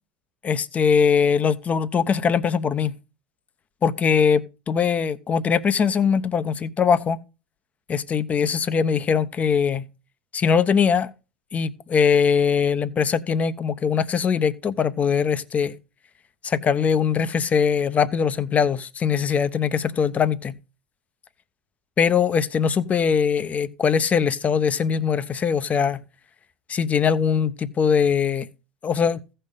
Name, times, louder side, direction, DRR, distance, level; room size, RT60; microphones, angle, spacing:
voice 1, 0.4-2.9 3.8-7.2 7.9-9.8 10.3-11.1 11.5-15.8 16.4-20.6 22.0-26.0 26.7-28.5 28.8-29.2, left 6 dB, 30° left, 0.8 m, -21 dB
15.5 x 5.6 x 4.0 m
figure-of-eight pair, 75°, 5 cm